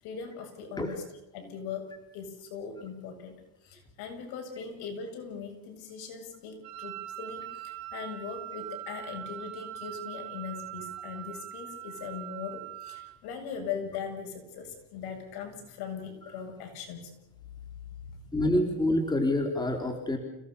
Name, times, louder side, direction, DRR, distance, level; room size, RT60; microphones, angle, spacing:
voice 1, 0.0-1.1 1.3-17.1 18.1-18.3, left 6 dB, 65° left, 3 dB, 7.9 m, -40 dB
Wind instrument woodwind instrument, 6.6-13.2, right 13 dB, 60° right, 5.3 m, -42 dB
voice 2, 18.3-20.2, left 1 dB, 10° left, 4 dB, 3.9 m, -27 dB
29.5 x 18.0 x 7.0 m, 0.86 s
supercardioid pair, 120°, 42 cm